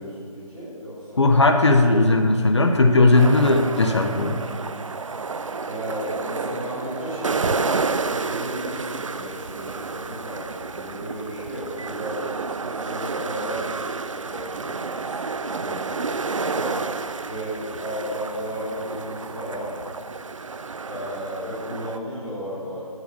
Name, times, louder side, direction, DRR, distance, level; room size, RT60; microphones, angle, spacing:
voice 1, 0.0-1.3 5.6-13.7 14.2-16.8 17.2-19.7 20.8-22.9, equal, 5° right, -12 dB, 1.3 m, -34 dB
voice 2, 1.2-4.4, left 2 dB, 50° left, 5 dB, 0.7 m, -17 dB
sound 1, 3.1-22.0, right 4 dB, 60° right, 0.5 m, -30 dB
10.5 x 4.9 x 7.0 m, 2.2 s
figure-of-eight pair, 175°, 19 cm